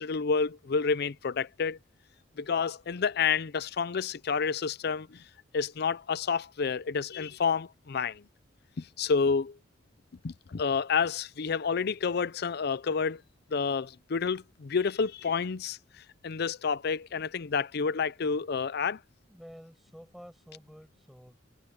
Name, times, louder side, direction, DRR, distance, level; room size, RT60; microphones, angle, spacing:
voice 1, 0.0-1.8 2.4-5.2 5.5-8.3 8.8-9.6 10.2-13.2 13.5-15.8 16.2-19.0, left 5 dB, 60° left, 0.5 m, -29 dB
voice 2, 19.3-21.4, equal, ahead, 6.4 m, -50 dB
head